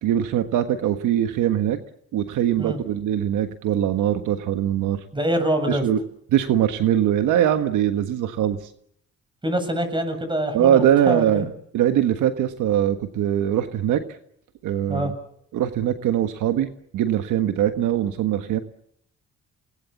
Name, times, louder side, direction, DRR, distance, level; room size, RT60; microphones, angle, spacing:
voice 1, 0.0-1.8 2.1-5.0 5.7-6.0 6.3-8.6 10.5-14.0 14.6-15.1 15.5-18.6, right 10 dB, 85° right, 8 dB, 1.5 m, -22 dB
voice 2, 5.1-5.8 9.4-11.5 14.9-15.1, right 1 dB, 15° right, 8 dB, 7.7 m, -25 dB
28.5 x 20.5 x 7.3 m, 0.71 s
cardioid pair, 90°, 30 cm